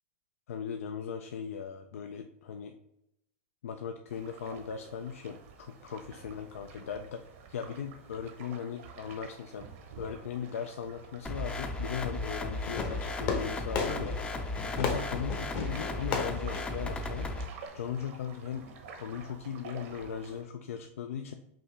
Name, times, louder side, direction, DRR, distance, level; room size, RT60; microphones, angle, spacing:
voice 1, 0.5-2.8 3.6-7.2 7.5-9.7 10.0-14.2 14.7-17.3 17.7-21.3, left 7 dB, 85° left, 6 dB, 0.4 m, -38 dB
sound 1, 4.1-20.4, right 5 dB, 65° right, 0.9 m, -50 dB
sound 2, 11.3-17.5, left 2 dB, 15° left, 0.4 m, -35 dB
Fireworks, 12.6-17.7, left 5 dB, 50° left, 0.9 m, -36 dB
5.4 x 2.8 x 3.3 m, 0.81 s
hypercardioid pair, 125°, 7 cm